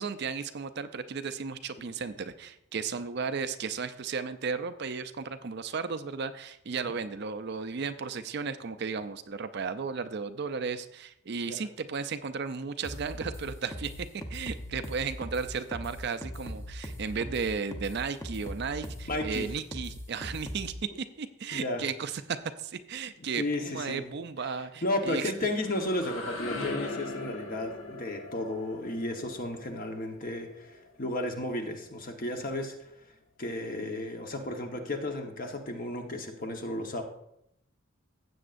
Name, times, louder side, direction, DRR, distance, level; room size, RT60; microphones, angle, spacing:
voice 1, 0.0-20.7 21.2-25.3, right 5 dB, 50° right, 11 dB, 0.4 m, -34 dB
sound 1, 12.8-20.7, equal, 10° left, 0.7 m, -40 dB
voice 2, 19.1-19.5 21.5-21.8 23.4-24.0 24.8-32.9 33.4-37.0, left 1 dB, 40° left, 4 dB, 1.1 m, -33 dB
sound 2, 25.2-31.0, left 2 dB, 65° left, 1.5 m, -40 dB
16.0 x 7.8 x 2.5 m, 0.80 s
head